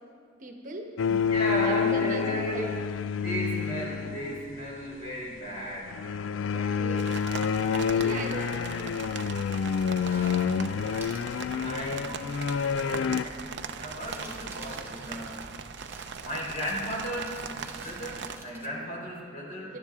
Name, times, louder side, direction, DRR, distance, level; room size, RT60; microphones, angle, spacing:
voice 1, 0.4-0.9 1.6-2.7 6.5-7.1 7.9-9.0 19.7-19.8, right 2 dB, 45° right, 3 dB, 1.1 m, -38 dB
sound 1, 1.0-4.5 5.9-13.2, left 6 dB, 75° left, 0.3 m, -28 dB
voice 2, 1.0-2.7 3.2-5.9 6.5-6.7 7.8-8.6 10.0-10.6 11.5-12.3 13.0-15.4 16.2-19.8, equal, 45° left, -4 dB, 4.1 m, -35 dB
sound 2, 7.0-18.4, right 6 dB, 60° right, 0.6 m, -40 dB
sound 3, 10.0-10.6 11.0-11.3 12.1-12.2 13.8-18.7, right 3 dB, 10° right, 1.1 m, -49 dB
22.0 x 11.5 x 3.6 m, 2.3 s
head